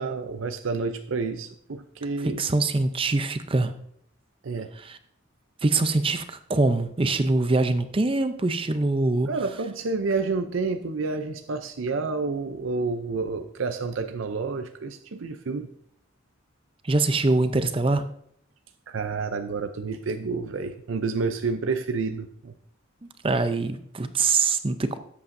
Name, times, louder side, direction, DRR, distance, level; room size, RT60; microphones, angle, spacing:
voice 1, 0.0-2.4 4.4-4.7 9.3-15.7 18.9-22.5, right 4 dB, 85° right, 7 dB, 0.6 m, -29 dB
voice 2, 2.4-3.7 4.8-5.0 5.6-9.3 16.8-18.0 23.0-25.0, right 3 dB, 25° right, 10 dB, 0.5 m, -24 dB
13.0 x 8.4 x 2.6 m, 0.68 s
head